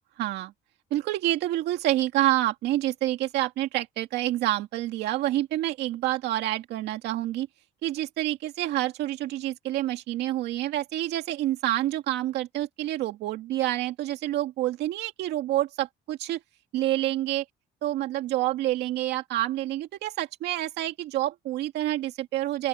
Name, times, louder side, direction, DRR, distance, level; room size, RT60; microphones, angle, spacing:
voice 1, 0.2-0.5 0.9-7.5 7.8-16.4 16.7-17.4 17.8-22.7, right 14 dB, 80° right, 2.2 m, -28 dB
open air
cardioid pair, 110°, 17 cm